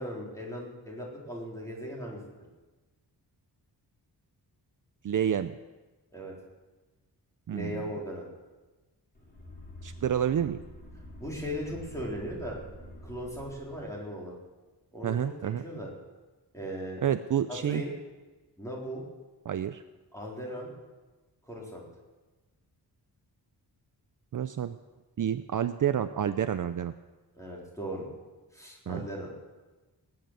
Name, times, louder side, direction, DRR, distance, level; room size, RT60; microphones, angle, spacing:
voice 1, 0.0-2.2 6.1-6.4 7.5-8.3 11.2-12.6 13.0-14.3 14.9-15.2 15.6-15.9 16.5-17.0 17.5-17.9 18.6-19.0 20.1-20.7 21.5-21.8 27.3-28.1 28.5-29.3, equal, 10° left, -3 dB, 4.0 m, -37 dB
voice 2, 5.0-5.6 7.5-7.9 9.8-10.6 15.0-15.6 17.0-17.8 19.4-19.8 24.3-24.8 25.2-26.9 28.9-29.1, right 9 dB, 50° right, 10 dB, 0.5 m, -29 dB
sound 1, 9.1-14.0, left 1 dB, 25° left, 3.9 m, -47 dB
18.5 x 9.5 x 7.6 m, 1.2 s
wide cardioid pair, 175°, 40 cm